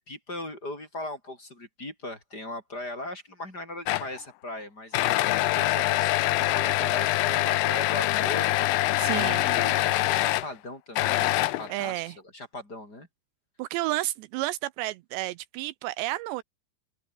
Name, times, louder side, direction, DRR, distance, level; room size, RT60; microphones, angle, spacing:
voice 1, 0.0-8.5 9.1-13.1, left 1 dB, 20° left, 6.9 m, -39 dB
sound 1, 3.9-4.2 4.9-10.5 11.0-11.8, left 17 dB, 75° left, 2.8 m, -24 dB
voice 2, 9.0-9.4 11.7-12.2 13.6-16.4, right 17 dB, 80° right, 2.8 m, -31 dB
omnidirectional pair, 5.1 m